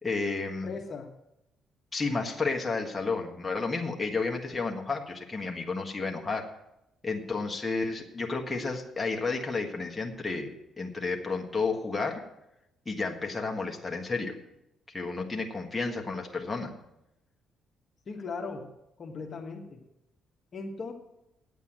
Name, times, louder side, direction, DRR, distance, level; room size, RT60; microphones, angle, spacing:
voice 1, 0.0-0.7 1.9-6.4 7.0-10.5 10.8-12.2 12.8-14.3 14.9-16.7, left 4 dB, 15° left, 1 dB, 1.5 m, -31 dB
voice 2, 0.6-1.1 18.1-18.7 19.0-19.8 20.5-20.9, left 4 dB, 40° left, 2 dB, 1.4 m, -38 dB
9.2 x 8.1 x 8.9 m, 0.88 s
cardioid pair, 115°, 0 cm